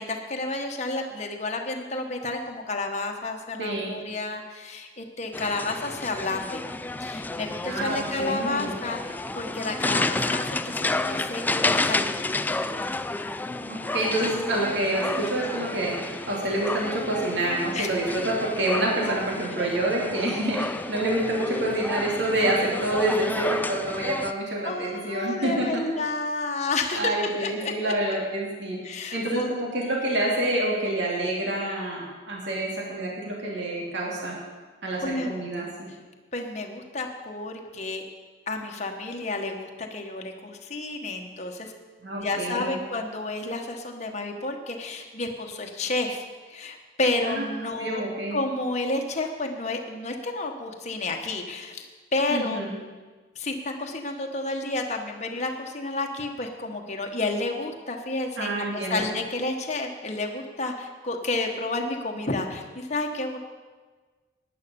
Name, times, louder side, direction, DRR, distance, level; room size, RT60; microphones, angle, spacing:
voice 1, 0.0-6.6 7.0-12.2 17.7-17.9 19.6-19.8 21.4-21.8 24.6-27.9 28.8-29.5 35.0-35.4 36.3-38.0 38.5-41.7 42.2-48.0 48.3-51.9 52.1-52.6 53.3-63.4, left 2 dB, 40° left, 2 dB, 1.3 m, -31 dB
voice 2, 3.6-3.9 7.7-8.7 13.6-25.8 26.9-28.8 29.1-34.4 34.8-35.7 42.0-42.8 47.2-48.4 52.3-52.8 58.4-59.0, right 1 dB, 65° right, -2 dB, 2.7 m, -27 dB
sound 1, 5.3-24.3, left 2 dB, 10° left, 0.3 m, -31 dB
11.5 x 9.8 x 6.9 m, 1.4 s
head